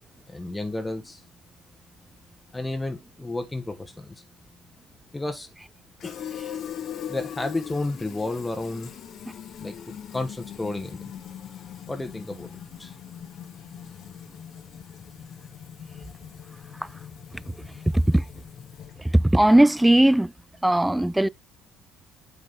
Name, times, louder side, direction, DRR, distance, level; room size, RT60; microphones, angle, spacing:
voice 1, 0.3-1.2 2.5-4.2 5.1-5.5 6.0-6.2 7.1-8.9 9.6-11.0 11.9-12.5 12.8-12.9, left 2 dB, 10° left, 1.1 m, -32 dB
Fill (with liquid), 6.0-19.1, left 9 dB, 45° left, 0.9 m, -40 dB
voice 2, 19.1-20.3 20.6-21.3, right 1 dB, 5° right, 0.3 m, -18 dB
8.7 x 3.9 x 3.9 m
figure-of-eight pair, 50°, 0 cm